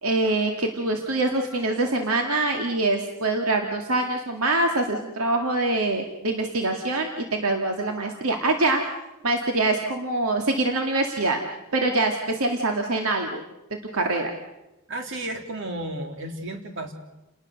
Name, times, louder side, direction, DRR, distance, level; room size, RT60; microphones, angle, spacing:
voice 1, 0.0-8.9 9.2-11.4 11.7-13.4 13.9-14.3, right 2 dB, 80° right, 3 dB, 2.2 m, -24 dB
voice 2, 14.9-16.9, right 1 dB, 60° right, 4 dB, 3.3 m, -33 dB
30.0 x 19.5 x 6.6 m, 0.96 s
head